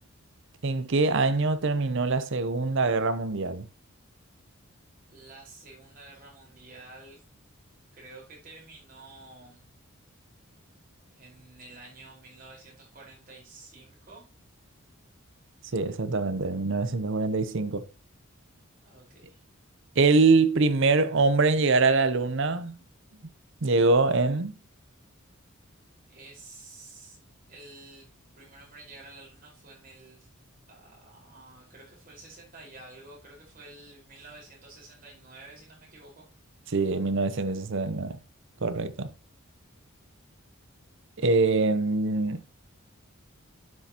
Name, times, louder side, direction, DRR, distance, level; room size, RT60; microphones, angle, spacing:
voice 1, 0.6-3.7 15.7-17.8 20.0-22.8 23.6-24.6 36.7-38.2 38.6-39.1 41.2-42.4, right 3 dB, 60° right, 0.7 m, -24 dB
voice 2, 5.1-7.2 7.9-9.6 11.1-14.2 18.8-19.4 26.1-27.2 27.5-28.1 28.4-30.3 30.7-36.3, right 2 dB, 40° right, 4.6 m, -50 dB
12.0 x 5.9 x 2.9 m
head